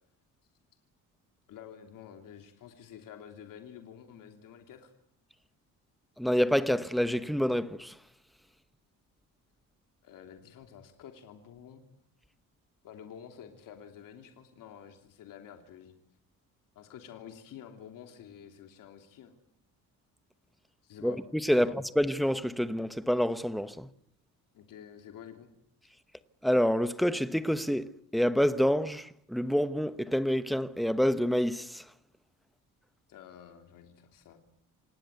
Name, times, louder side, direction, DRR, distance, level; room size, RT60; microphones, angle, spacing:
voice 1, 1.5-4.9 10.0-11.8 12.8-15.9 16.7-19.3 20.8-21.2 21.5-21.8 24.5-25.5 33.1-34.4, left 9 dB, 70° left, 3.1 m, -49 dB
voice 2, 6.2-7.9 21.0-21.1 21.4-23.9 26.4-27.9 28.1-31.8, equal, ahead, 0.9 m, -27 dB
27.5 x 19.0 x 8.2 m
cardioid pair, 145°, 34 cm